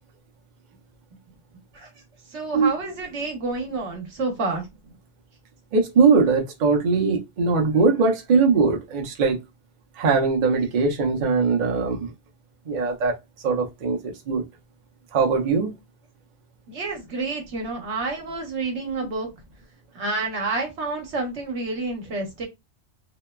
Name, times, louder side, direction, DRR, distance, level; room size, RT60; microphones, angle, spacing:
voice 1, 2.3-4.7 16.7-19.3 19.9-22.5, right 3 dB, 70° right, 1.1 m, -29 dB
voice 2, 5.7-9.4 10.0-12.1 12.7-13.1 13.4-14.4 15.1-15.7, right 4 dB, 50° right, 0.6 m, -21 dB
2.9 x 2.1 x 2.2 m
omnidirectional pair, 1.2 m